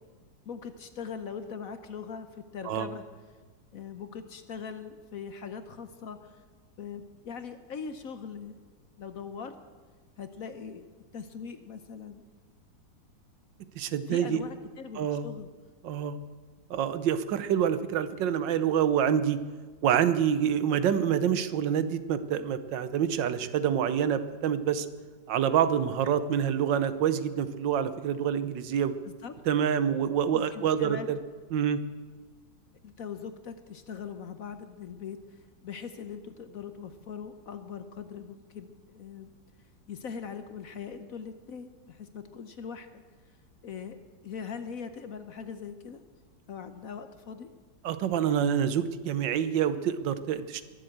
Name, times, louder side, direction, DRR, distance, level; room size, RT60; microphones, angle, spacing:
voice 1, 0.4-3.0 3.7-6.4 6.8-8.6 9.0-9.6 10.2-10.9 11.1-12.2 14.1-15.5 29.0-29.3 30.3-31.1 32.8-39.3 39.9-43.0 43.6-44.0 44.2-46.0 46.5-47.5, left 6 dB, 55° left, 9 dB, 1.1 m, -41 dB
voice 2, 13.7-14.4 14.9-15.3 15.8-16.2 16.7-19.4 19.8-24.9 25.3-28.9 29.5-31.2 31.5-31.8 47.8-50.6, right 9 dB, 80° right, 12 dB, 1.5 m, -27 dB
22.0 x 7.8 x 7.9 m, 1.4 s
omnidirectional pair, 2.0 m